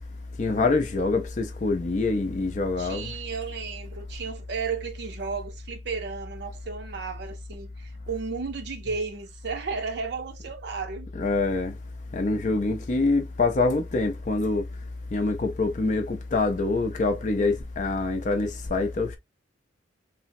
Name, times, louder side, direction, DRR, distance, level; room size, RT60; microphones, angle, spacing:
voice 1, 0.4-3.1 11.2-11.8 12.1-14.7 15.1-19.2, left 3 dB, 40° left, 0.4 m, -25 dB
voice 2, 2.8-11.1, right 5 dB, 60° right, 0.5 m, -34 dB
3.3 x 2.0 x 2.5 m
head